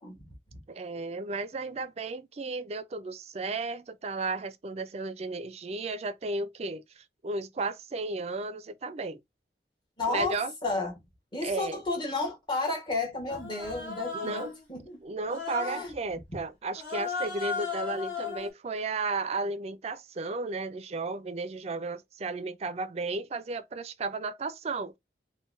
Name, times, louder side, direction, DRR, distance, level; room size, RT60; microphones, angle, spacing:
voice 1, 0.7-9.2 10.1-10.5 11.4-11.8 14.1-14.5 15.0-25.0, right 3 dB, 35° right, 0.4 m, -34 dB
voice 2, 10.0-10.3 10.6-10.9 11.3-15.0 15.6-15.9, left 3 dB, 25° left, 1.1 m, -32 dB
Human voice, 13.3-14.6 15.3-15.9 16.7-18.5, left 5 dB, 45° left, 1.7 m, -35 dB
3.7 x 2.2 x 2.5 m
head